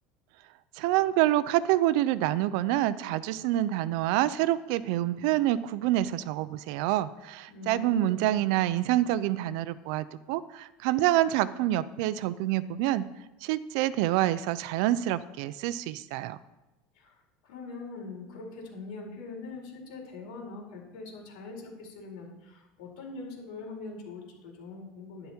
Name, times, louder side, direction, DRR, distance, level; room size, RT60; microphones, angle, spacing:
voice 1, 0.8-13.0 13.4-16.4, right 14 dB, 65° right, 16 dB, 0.5 m, -27 dB
voice 2, 7.5-8.5 16.9-17.1 17.4-25.3, left 3 dB, 90° left, -1 dB, 4.6 m, -42 dB
12.0 x 11.0 x 4.4 m, 0.99 s
cardioid pair, 170°, 4 cm